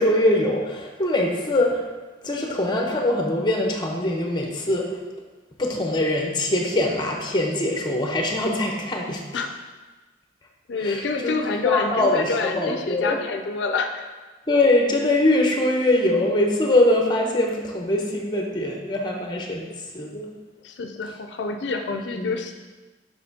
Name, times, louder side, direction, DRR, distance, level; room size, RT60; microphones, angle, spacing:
voice 1, 0.0-1.9 2.2-5.0 5.6-9.4 10.7-11.4 11.6-13.2 14.5-19.7 19.9-20.3 22.1-22.3, left 1 dB, 25° left, 1 dB, 0.7 m, -22 dB
voice 2, 10.7-14.1 20.6-22.5, left 4 dB, 85° left, 6 dB, 0.4 m, -27 dB
6.7 x 5.7 x 2.7 m, 1.3 s
head